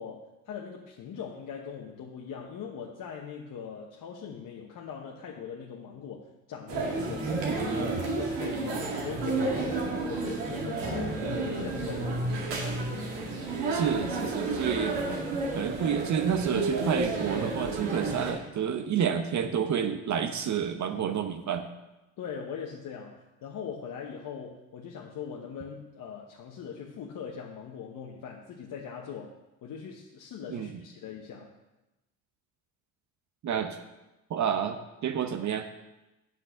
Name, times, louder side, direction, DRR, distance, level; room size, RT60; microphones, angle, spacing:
voice 1, 0.0-12.1 22.2-31.5, left 7 dB, 50° left, 0 dB, 1.2 m, -41 dB
sound 1, 6.7-18.3, right 2 dB, 75° right, 2.3 m, -31 dB
voice 2, 13.7-15.0 15.5-21.7 30.5-30.8 33.4-33.8 34.3-35.7, right 8 dB, 45° right, 7 dB, 0.9 m, -29 dB
7.9 x 6.3 x 6.2 m, 1.0 s
hypercardioid pair, 60°, 40 cm